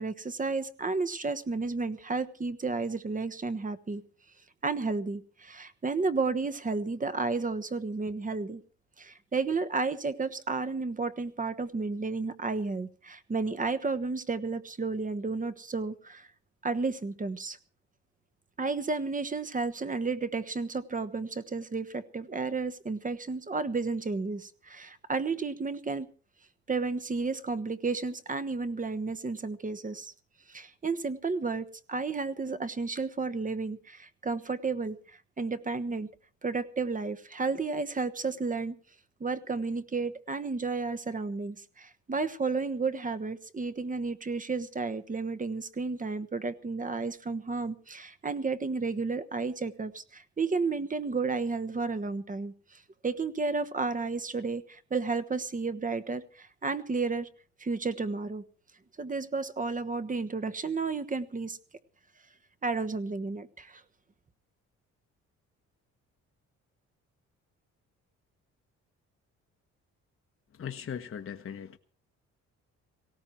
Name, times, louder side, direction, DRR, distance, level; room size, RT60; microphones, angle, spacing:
voice 1, 0.0-4.0 4.6-8.6 9.0-16.3 16.6-17.6 18.6-26.1 26.7-30.1 30.5-35.0 35.4-36.1 36.4-38.7 39.2-57.3 57.6-58.4 59.0-61.6 62.6-63.8, right 4 dB, 25° right, 12 dB, 1.3 m, -32 dB
voice 2, 70.5-71.8, left 8 dB, 45° left, 7 dB, 1.2 m, -39 dB
18.5 x 17.0 x 4.6 m, 0.41 s
cardioid pair, 90°, 30 cm